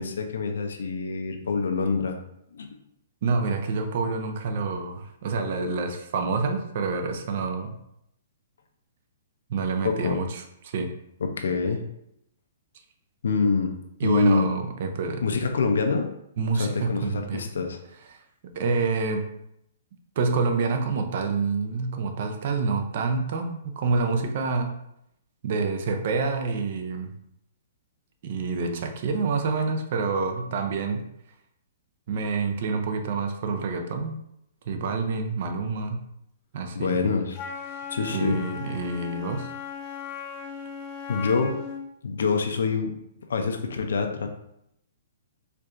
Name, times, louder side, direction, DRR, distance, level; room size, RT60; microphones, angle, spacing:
voice 1, 0.0-2.2 2.5-2.8 9.8-10.2 11.2-11.8 13.2-14.5 15.2-16.1 16.6-17.8 36.7-37.4 37.9-38.4 41.1-41.6 42.0-42.9 43.3-44.3, left 4 dB, 85° left, 5 dB, 0.5 m, -25 dB
voice 2, 3.2-7.7 9.5-10.9 14.0-15.2 16.4-17.4 18.1-18.2 18.5-19.3 20.2-24.8 25.4-27.1 28.2-31.0 32.1-34.2 34.7-36.0 36.5-37.0 37.7-37.8 38.1-39.5, right 4 dB, 50° right, 6 dB, 0.5 m, -27 dB
Wind instrument woodwind instrument, 37.3-41.9, left 7 dB, 25° left, 0.4 m, -37 dB
4.5 x 2.5 x 2.5 m, 0.78 s
hypercardioid pair, 160°, 0 cm